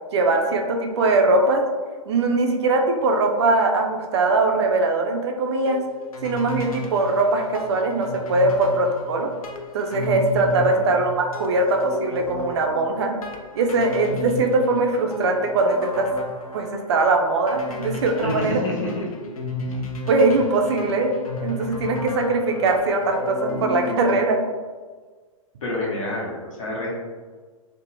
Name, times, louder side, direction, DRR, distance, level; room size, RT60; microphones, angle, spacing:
voice 1, 0.1-1.6 2.1-5.8 6.2-9.3 9.7-13.1 13.5-16.1 16.5-18.6 20.1-21.1 21.4-24.4, right 2 dB, 50° right, 2 dB, 0.4 m, -21 dB
sound 1, 5.6-24.2, left 2 dB, 80° left, 0.5 m, -33 dB
voice 2, 18.2-19.0 19.6-19.8 25.6-26.9, left 2 dB, 60° left, -4 dB, 0.9 m, -28 dB
2.6 x 2.1 x 2.7 m, 1.5 s
figure-of-eight pair, 115°, 18 cm